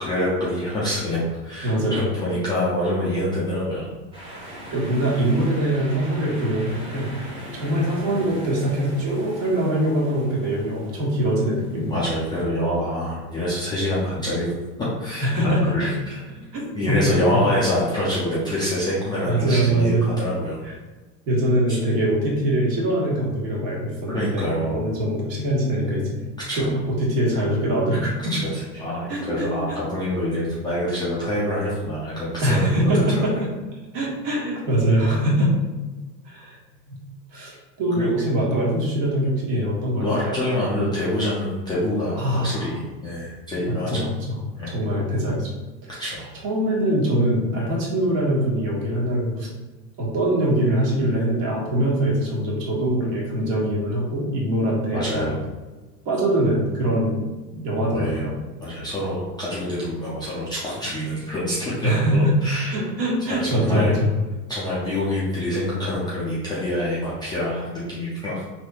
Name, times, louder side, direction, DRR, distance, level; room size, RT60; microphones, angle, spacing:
voice 1, 0.0-3.9 11.8-14.5 15.0-16.2 16.7-20.6 21.7-21.8 24.1-24.8 26.5-26.7 28.3-32.6 32.9-33.2 38.0-38.5 39.9-44.0 44.6-44.8 46.0-46.3 54.9-55.4 57.5-57.6 57.9-58.3 58.6-62.7 63.3-64.0 64.5-68.4, left 1 dB, 10° left, -9 dB, 0.4 m, -26 dB
voice 2, 1.6-2.0 4.7-7.1 7.6-11.9 15.2-15.9 16.5-17.0 17.3-17.5 19.2-20.1 20.6-20.7 21.3-26.2 26.5-28.3 29.1-29.8 32.4-33.5 33.9-35.6 36.2-36.6 36.9-37.0 37.3-40.4 42.2-42.7 43.7-44.1 44.7-45.5 45.8-46.0 46.4-49.5 50.0-55.3 56.0-57.2 57.6-58.3 61.8-62.4 62.7-64.1, right 1 dB, 55° right, -3 dB, 1.3 m, -23 dB
sound 1, 4.1-12.4, equal, 10° right, 1.3 m, -39 dB
3.4 x 2.8 x 2.3 m, 1.2 s
hypercardioid pair, 105°, 49 cm